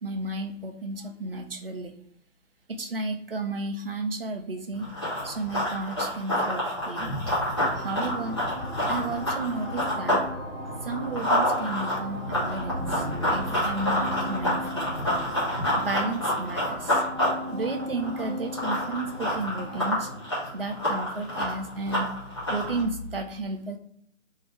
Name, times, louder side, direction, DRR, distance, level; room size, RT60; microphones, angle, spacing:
voice 1, 0.0-1.9 2.7-4.9 5.2-7.2 7.8-8.4 8.9-10.2 10.8-13.0 13.3-14.9 15.8-17.0 17.5-20.1 20.5-22.1 22.5-23.8, right 3 dB, 50° right, 5 dB, 0.4 m, -33 dB
Run, 4.8-10.3 10.6-22.8, left 1 dB, 20° left, 0.8 m, -28 dB
sound 1, 7.5-21.6, equal, 25° right, 1.0 m, -37 dB
2.7 x 2.5 x 3.1 m, 0.68 s
figure-of-eight pair, 150°, 39 cm